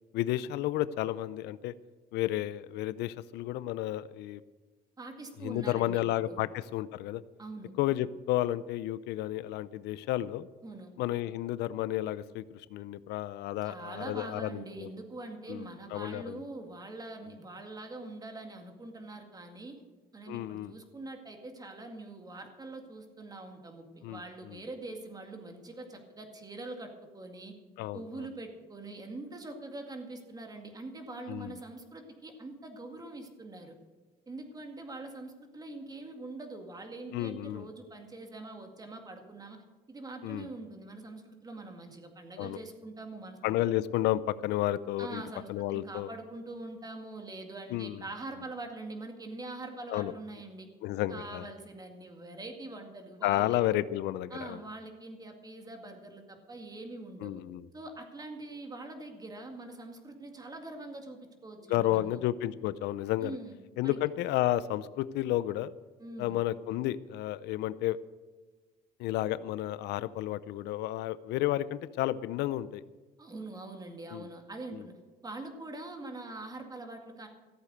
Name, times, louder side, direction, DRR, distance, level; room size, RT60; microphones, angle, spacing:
voice 1, 0.1-1.7 2.1-4.4 5.4-7.2 7.8-10.5 11.0-14.9 15.5-15.7 15.9-16.4 20.3-20.7 24.0-24.2 24.5-24.6 27.8-28.3 31.3-31.6 37.1-37.7 40.2-40.5 42.4-42.6 43.4-45.2 45.5-46.1 47.7-48.0 49.9-50.1 50.8-51.5 53.2-54.6 57.2-57.7 61.7-63.4 63.8-65.7 66.2-68.0 69.0-72.8 74.1-74.3 74.7-74.8, left 14 dB, 85° left, 17 dB, 0.5 m, -32 dB
voice 2, 5.0-6.4 7.4-7.7 10.6-10.9 13.6-19.8 20.1-27.5 27.9-33.7 34.3-39.6 39.9-43.4 45.0-50.7 51.1-53.6 54.3-57.4 57.7-62.2 63.2-63.6 63.8-64.0 66.0-66.4 73.2-74.9 75.2-77.3, right 2 dB, 20° right, 4 dB, 2.1 m, -44 dB
14.5 x 8.3 x 7.9 m, 1.3 s
cardioid pair, 110°, 17 cm